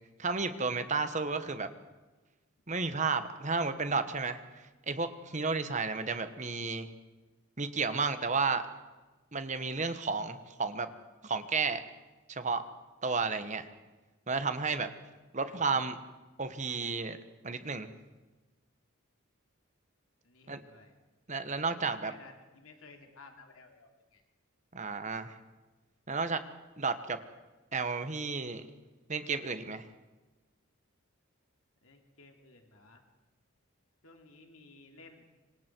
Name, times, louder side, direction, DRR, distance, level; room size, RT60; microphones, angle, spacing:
voice 1, 0.2-1.7 2.7-4.4 4.9-6.9 7.6-8.6 9.3-10.9 11.2-11.8 12.3-12.6 13.0-13.6 14.3-14.9 15.3-16.0 16.4-17.2 17.4-17.9 20.5-20.6 21.3-22.1 24.7-25.3 26.1-26.4 26.8-27.2 27.7-28.6 29.1-29.8, right 4 dB, 35° right, 10 dB, 1.3 m, -32 dB
voice 2, 15.4-15.8 20.2-21.0 21.4-24.2 31.8-33.0 34.0-35.3, left 3 dB, 85° left, 3 dB, 2.9 m, -56 dB
26.5 x 25.0 x 4.6 m, 1.2 s
head